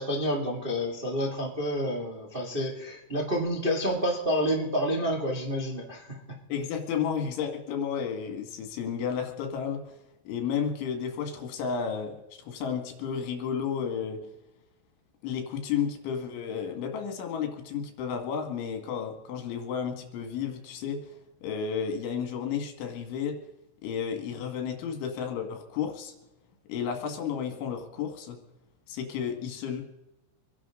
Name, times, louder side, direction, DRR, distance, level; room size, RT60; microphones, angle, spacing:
voice 1, 0.0-6.2, equal, 70° right, -1 dB, 0.5 m, -29 dB
voice 2, 6.5-9.8 10.3-14.2 15.2-21.0 21.4-23.4 23.8-26.1 26.7-28.4 28.9-29.8, left 7 dB, 75° left, 5 dB, 4.3 m, -32 dB
26.5 x 11.0 x 3.8 m, 0.96 s
omnidirectional pair, 5.6 m